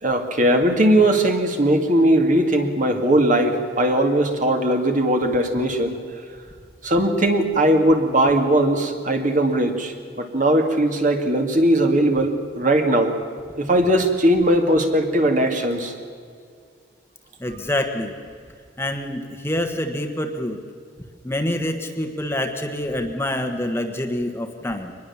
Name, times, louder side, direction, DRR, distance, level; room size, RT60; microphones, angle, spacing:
voice 1, 0.0-6.0 6.8-13.2 13.6-15.9, right 1 dB, 40° right, 4 dB, 2.3 m, -19 dB
voice 2, 17.4-18.2 18.8-20.6 21.2-24.9, left 1 dB, 15° left, 5 dB, 1.3 m, -26 dB
24.5 x 20.5 x 7.2 m, 2.2 s
head